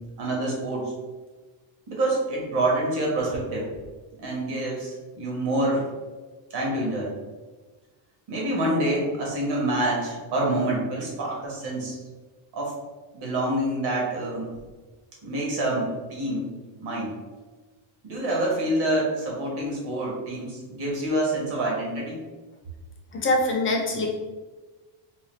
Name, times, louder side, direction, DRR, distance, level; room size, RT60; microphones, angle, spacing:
voice 1, 0.2-0.9 1.9-3.7 4.2-5.8 6.5-7.1 8.3-11.9 12.5-12.7 13.1-14.5 15.2-16.5 16.8-17.2 18.0-22.2, right 1 dB, 55° right, -3 dB, 1.3 m, -27 dB
voice 2, 23.1-24.1, left 2 dB, 25° left, 0 dB, 0.5 m, -23 dB
3.9 x 2.2 x 3.2 m, 1.3 s
cardioid pair, 150°, 48 cm